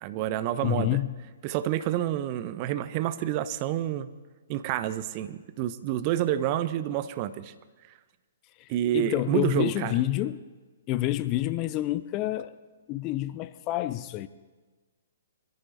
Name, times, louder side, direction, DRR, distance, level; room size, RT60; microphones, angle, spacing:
voice 1, 0.0-1.0 1.4-4.1 4.5-7.5 8.7-10.0, right 12 dB, 35° right, 0.6 m, -28 dB
voice 2, 0.6-1.2 8.6-10.5 10.9-12.6 12.9-14.3, left 15 dB, 30° left, 0.5 m, -28 dB
23.5 x 14.5 x 2.6 m
figure-of-eight pair, 120°, 0 cm